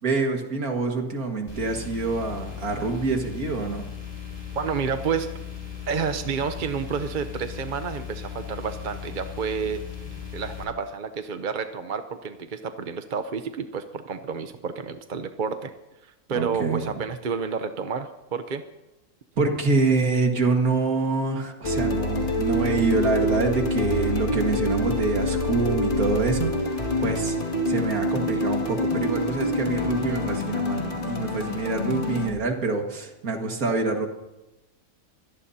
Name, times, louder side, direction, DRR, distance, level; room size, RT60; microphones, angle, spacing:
voice 1, 0.0-3.9 16.3-17.0 19.4-26.6 27.0-27.4 27.7-34.1, right 3 dB, 65° right, 3 dB, 2.4 m, -26 dB
sound 1, 1.5-10.6, left 8 dB, 10° left, 4.6 m, -37 dB
voice 2, 4.5-5.3 5.9-9.8 10.3-15.7 16.0-18.6, right 6 dB, 45° right, 8 dB, 0.7 m, -30 dB
sound 2, 21.6-32.3, left 1 dB, 35° left, 2.4 m, -26 dB
24.0 x 17.0 x 2.8 m, 0.98 s
omnidirectional pair, 1.6 m